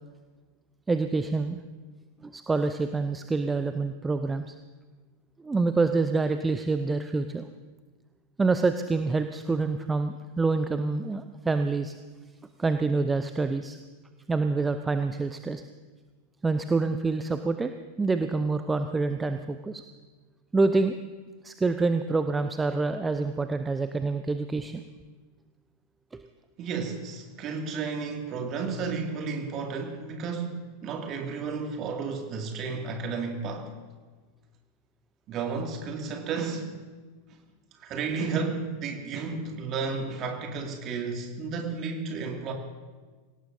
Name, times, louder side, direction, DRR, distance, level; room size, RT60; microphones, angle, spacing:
voice 1, 0.9-1.6 2.2-4.5 5.4-7.5 8.4-11.9 12.6-13.8 14.3-15.6 16.4-17.7 18.0-19.8 20.5-20.9 21.4-24.8 26.1-26.2, right 3 dB, 10° right, 9 dB, 0.6 m, -26 dB
voice 2, 26.6-33.7 35.3-36.7 37.8-42.5, right 4 dB, 35° right, 2 dB, 2.4 m, -32 dB
25.5 x 17.5 x 2.7 m, 1.4 s
figure-of-eight pair, 90°, 0 cm